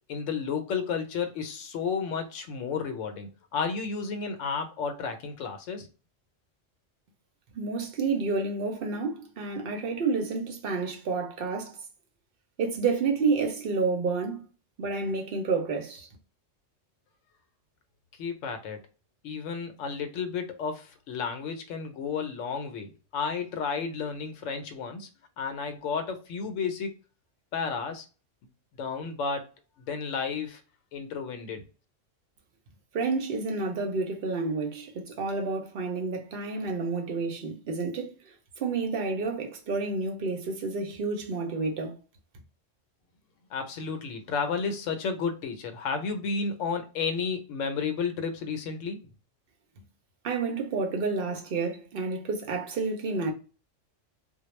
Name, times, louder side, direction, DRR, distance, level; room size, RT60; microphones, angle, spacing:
voice 1, 0.1-5.9 18.2-18.8 19.2-25.1 25.4-26.9 27.5-28.0 28.8-29.5 29.9-30.6 30.9-31.6 43.5-49.0, left 5 dB, 80° left, 0.9 m, -32 dB
voice 2, 7.5-11.8 12.6-14.4 14.8-16.1 32.9-42.0 50.2-53.3, right 4 dB, 60° right, 0.7 m, -30 dB
2.3 x 2.0 x 3.0 m
omnidirectional pair, 1.3 m